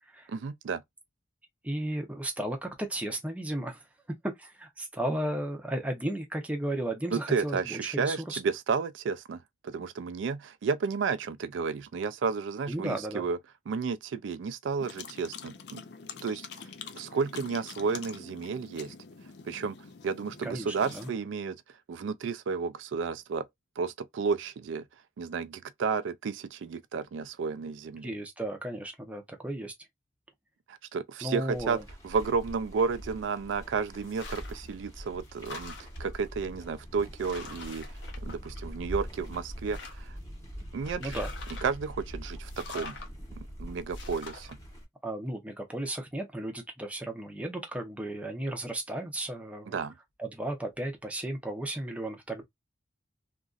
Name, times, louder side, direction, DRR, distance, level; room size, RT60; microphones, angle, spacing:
voice 1, 0.3-0.8 7.1-13.4 13.7-15.8 16.2-16.7 16.9-18.9 19.4-19.8 20.0-23.5 23.8-24.9 25.2-28.1 30.7-31.8 32.0-35.7 36.0-37.9 38.2-40.2 40.7-41.2 41.6-43.0 43.4-44.6 49.7-49.9, right 5 dB, 85° right, 0.4 m, -32 dB
voice 2, 1.6-3.9 4.2-8.4 12.7-13.2 20.4-21.1 28.0-29.7 31.2-31.8 41.0-41.3 45.0-49.8 50.2-52.4, right 1 dB, 5° right, 0.6 m, -34 dB
sound 1, 14.8-21.1, left 6 dB, 60° left, 0.4 m, -46 dB
sound 2, 31.5-44.8, equal, 15° left, 1.0 m, -43 dB
sound 3, 34.0-34.7 35.1-36.1 36.8-36.9 37.2-38.9 39.3-40.2 40.8-41.8 42.4-43.1 43.9-44.5, left 4 dB, 75° left, 0.8 m, -45 dB
2.9 x 2.5 x 2.4 m
head